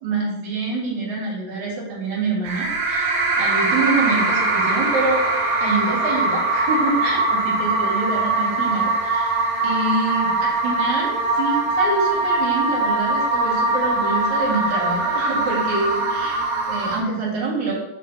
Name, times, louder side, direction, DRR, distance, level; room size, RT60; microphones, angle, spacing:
voice 1, 0.0-5.2 5.6-9.4 9.6-17.7, right 3 dB, 60° right, -4 dB, 3.4 m, -26 dB
sound 1, 2.4-17.0, right 2 dB, 85° right, 3.0 m, -22 dB
9.4 x 3.3 x 5.5 m, 0.92 s
omnidirectional pair, 3.9 m